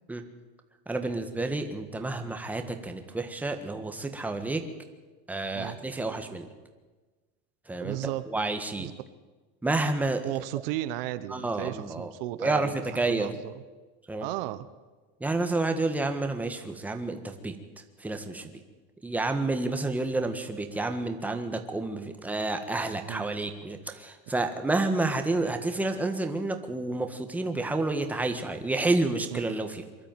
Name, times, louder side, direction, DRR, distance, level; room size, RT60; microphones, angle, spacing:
voice 1, 0.9-4.6 5.3-6.5 7.7-8.0 8.3-8.9 9.6-10.3 11.3-12.1 12.4-13.3 14.1-14.3 15.2-18.6 19.0-29.8, right 2 dB, 5° right, 6 dB, 1.5 m, -30 dB
voice 2, 7.8-8.3 8.8-8.9 10.2-13.5 14.2-14.7 23.1-23.2 29.3-29.4, right 16 dB, 70° right, 13 dB, 1.1 m, -34 dB
23.0 x 12.5 x 9.1 m, 1.3 s
supercardioid pair, 155°, 29 cm